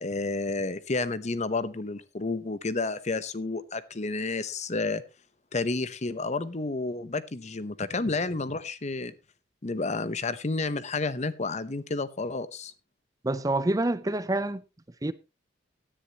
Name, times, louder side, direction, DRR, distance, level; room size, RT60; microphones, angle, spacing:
voice 1, 0.0-5.0 5.5-9.1 9.6-12.7, left 3 dB, 40° left, 0.8 m, -30 dB
voice 2, 13.2-14.6 15.0-15.1, right 2 dB, 20° right, 0.6 m, -27 dB
17.0 x 10.0 x 3.0 m
head